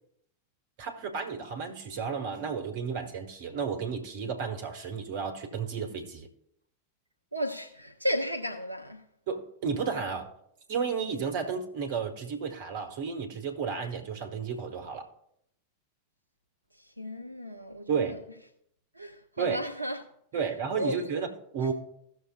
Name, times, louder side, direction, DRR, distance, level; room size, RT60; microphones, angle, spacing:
voice 1, 0.8-6.3 9.3-10.3 10.7-15.1 17.9-18.2 19.4-19.6 20.3-21.7, right 6 dB, 50° right, 1.4 m, -32 dB
voice 2, 7.3-9.1 16.7-18.2 18.9-20.0 20.3-20.5 20.8-21.0 21.6-21.7, equal, 85° right, 0.6 m, -34 dB
16.5 x 6.5 x 2.3 m
figure-of-eight pair, 90°, 0 cm